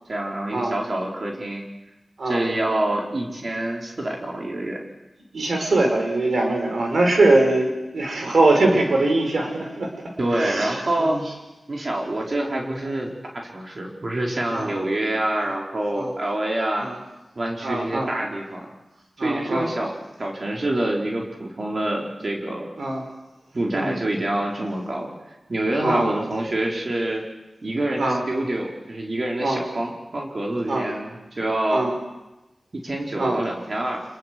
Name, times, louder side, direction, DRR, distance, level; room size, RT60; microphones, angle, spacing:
voice 1, 0.1-1.6 2.2-4.9 10.2-11.2 11.7-16.9 17.4-18.7 19.2-22.7 23.5-25.1 25.5-27.2 27.6-31.9 32.7-34.0, right 1 dB, 55° right, -1 dB, 4.6 m, -26 dB
voice 2, 5.3-11.2 14.5-14.7 16.0-16.1 16.8-17.0 17.6-18.1 19.2-19.7 22.8-23.0 23.7-24.0 25.8-26.1 28.0-28.2 29.4-29.6 30.7-30.9 31.7-31.9 33.2-33.4, right 2 dB, 80° right, 3 dB, 5.4 m, -22 dB
27.0 x 22.0 x 7.8 m, 1.0 s
cardioid pair, 50°, 0 cm